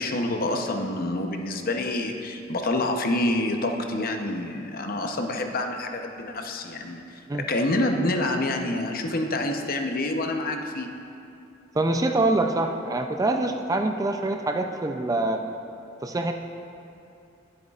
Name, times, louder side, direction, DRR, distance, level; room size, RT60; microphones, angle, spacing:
voice 1, 0.0-10.9, left 2 dB, 50° left, 4 dB, 0.8 m, -27 dB
voice 2, 11.7-15.4 16.0-16.3, right 2 dB, 20° right, 5 dB, 0.4 m, -25 dB
20.0 x 8.0 x 2.4 m, 2.6 s
head